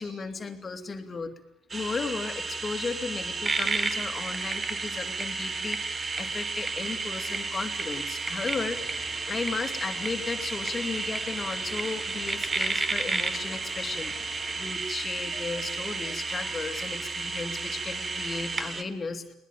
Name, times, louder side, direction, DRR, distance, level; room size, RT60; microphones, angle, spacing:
voice 1, 0.0-1.3 1.7-9.0 9.2-19.3, left 4 dB, 25° left, 7 dB, 2.6 m, -35 dB
sound 1, 1.7-18.8, right 4 dB, 25° right, 1.7 m, -32 dB
sound 2, 8.4-14.7, left 8 dB, 45° left, 2.1 m, -49 dB
21.0 x 20.0 x 9.2 m, 0.87 s
figure-of-eight pair, 55°, 0 cm